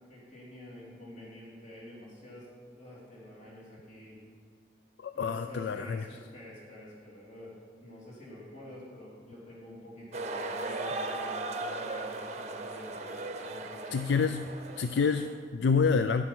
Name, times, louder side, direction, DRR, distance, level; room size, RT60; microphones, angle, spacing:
voice 1, 0.1-2.5 2.7-4.2 5.1-14.1, left 1 dB, 40° left, -6 dB, 3.3 m, -48 dB
voice 2, 5.0-6.0 13.9-14.5 14.8-16.2, left 5 dB, 70° left, 10 dB, 0.4 m, -27 dB
sound 1, 10.1-15.3, right 2 dB, 35° right, 0.7 m, -37 dB
10.0 x 9.8 x 6.1 m, 2.1 s
head